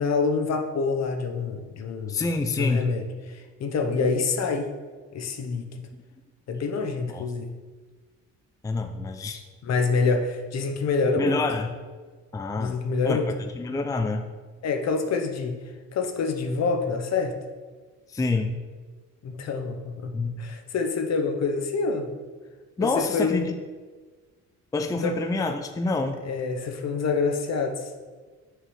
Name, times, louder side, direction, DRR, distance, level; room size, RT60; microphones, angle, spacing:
voice 1, 0.0-2.3 2.6-4.7 5.1-5.8 6.5-7.5 9.6-11.4 12.6-13.3 14.6-17.4 19.2-22.1 22.8-23.4 25.0-25.2 26.2-27.9, left 4 dB, 60° left, 5 dB, 0.9 m, -27 dB
voice 2, 2.1-2.9 7.1-7.3 8.6-9.4 11.2-11.7 12.3-12.8 13.0-13.2 13.5-14.2 18.1-18.5 20.1-20.4 22.8-23.6 24.7-26.2, left 3 dB, 10° left, 6 dB, 0.4 m, -27 dB
6.3 x 4.7 x 4.8 m, 1.4 s
cardioid pair, 90°, 30 cm